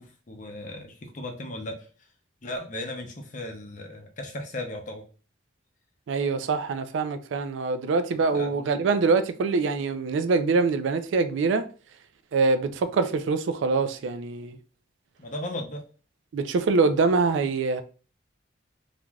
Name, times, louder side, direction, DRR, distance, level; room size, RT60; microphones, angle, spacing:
voice 1, 0.0-1.9 2.4-5.0 8.3-8.7 15.2-15.8, left 1 dB, 40° left, 0.6 m, -36 dB
voice 2, 6.1-11.7 12.3-14.6 16.3-17.8, right 4 dB, 70° right, 0.3 m, -24 dB
3.2 x 2.5 x 2.2 m
head